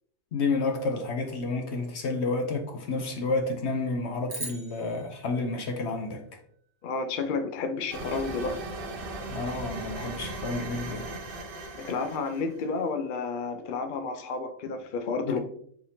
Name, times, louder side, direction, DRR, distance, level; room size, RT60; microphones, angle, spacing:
voice 1, 0.3-6.2 9.3-11.1 15.3-15.4, left 3 dB, 60° left, 0.8 m, -30 dB
sound 1, 4.3-6.7, right 2 dB, 20° right, 0.7 m, -42 dB
voice 2, 6.8-8.6 11.7-15.4, left 4 dB, 75° left, 0.4 m, -31 dB
sound 2, 7.9-12.7, right 2 dB, 50° right, 0.7 m, -38 dB
4.5 x 3.6 x 2.7 m
omnidirectional pair, 1.5 m